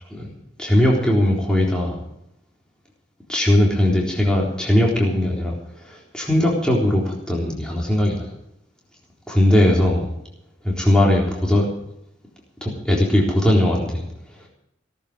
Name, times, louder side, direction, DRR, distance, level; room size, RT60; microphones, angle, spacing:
voice 1, 0.6-2.0 3.3-5.6 5.9-8.3 9.3-10.0 10.6-11.7 12.6-14.1, left 1 dB, 5° left, -3 dB, 3.9 m, -19 dB
16.5 x 14.0 x 5.1 m, 0.79 s
head